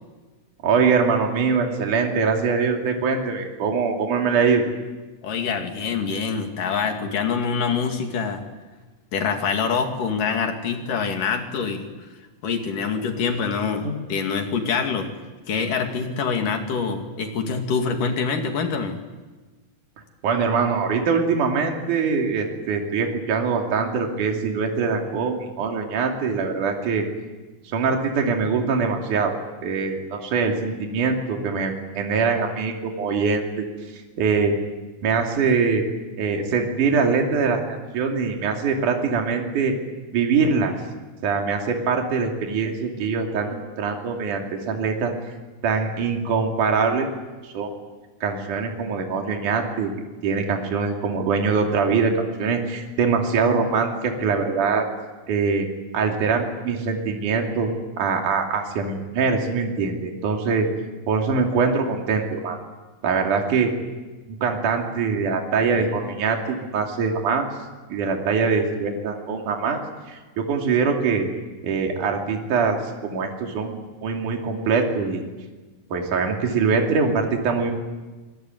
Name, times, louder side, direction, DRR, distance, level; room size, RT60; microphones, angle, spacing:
voice 1, 0.6-4.7 13.8-13.9 20.2-27.1 27.7-33.6 33.9-34.6 35.0-35.8 36.2-39.7 40.1-40.7 41.2-45.1 45.6-47.1 47.4-47.7 48.2-49.9 50.2-54.9 55.3-55.7 55.9-57.7 58.0-60.7 61.1-62.6 63.0-63.7 64.3-67.5 67.9-69.8 70.1-71.3 71.6-72.8 73.0-75.2 75.9-77.7, right 5 dB, 55° right, 2 dB, 4.1 m, -23 dB
voice 2, 5.2-8.4 9.1-12.1 12.4-15.1 15.5-19.0, left 5 dB, 60° left, 5 dB, 3.8 m, -25 dB
25.5 x 20.5 x 9.2 m, 1.2 s
omnidirectional pair, 4.3 m